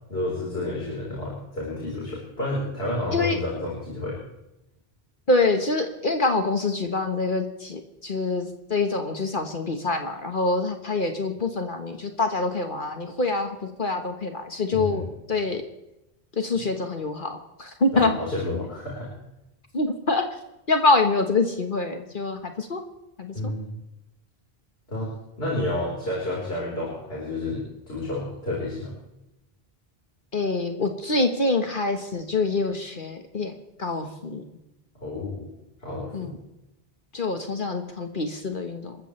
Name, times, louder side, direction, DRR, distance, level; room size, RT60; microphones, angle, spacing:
voice 1, 0.1-4.2 14.7-15.1 16.5-16.6 17.9-19.1 23.3-23.7 24.9-25.1 25.4-28.9 35.0-35.5 35.8-36.3, left 2 dB, 75° left, -5 dB, 4.6 m, -30 dB
voice 2, 5.3-15.0 15.3-15.6 16.4-18.2 19.7-20.3 20.7-22.8 23.2-23.5 30.3-34.4 36.1-36.4 37.1-39.0, left 3 dB, 55° left, 5 dB, 1.5 m, -25 dB
28.0 x 14.0 x 3.3 m, 0.92 s
omnidirectional pair, 1.0 m